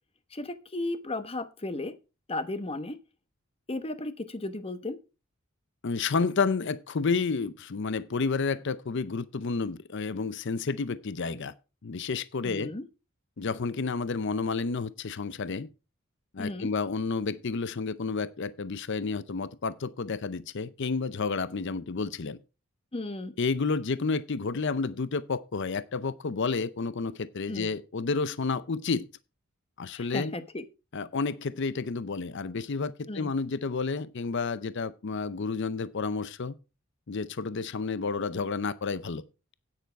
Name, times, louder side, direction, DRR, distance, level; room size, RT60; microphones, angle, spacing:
voice 1, 0.3-1.9 2.3-3.0 3.7-5.0 12.4-12.8 16.4-16.7 22.9-23.3 27.5-27.7 29.9-30.6 33.1-33.3, left 2 dB, 25° left, 1.0 m, -34 dB
voice 2, 5.8-11.5 11.8-12.7 13.4-15.7 16.3-22.4 23.4-29.1 29.8-30.3 30.9-36.5 37.1-39.2, left 4 dB, 55° left, 0.6 m, -30 dB
9.3 x 8.7 x 4.5 m
head